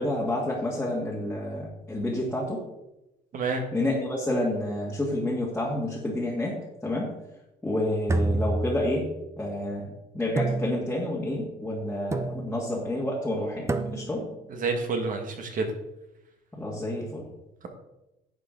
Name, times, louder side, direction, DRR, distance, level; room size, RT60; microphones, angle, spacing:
voice 1, 0.0-2.7 3.7-7.1 7.6-9.1 9.4-14.2 16.6-17.3, left 1 dB, 10° left, -5 dB, 1.9 m, -29 dB
voice 2, 3.3-3.6 14.5-15.7, right 4 dB, 45° right, 4 dB, 1.7 m, -28 dB
sound 1, 8.1-9.3 10.4-11.2 12.1-12.7 13.7-14.3, right 2 dB, 15° right, 0.6 m, -29 dB
10.5 x 6.8 x 3.9 m, 0.92 s
cardioid pair, 135°, 19 cm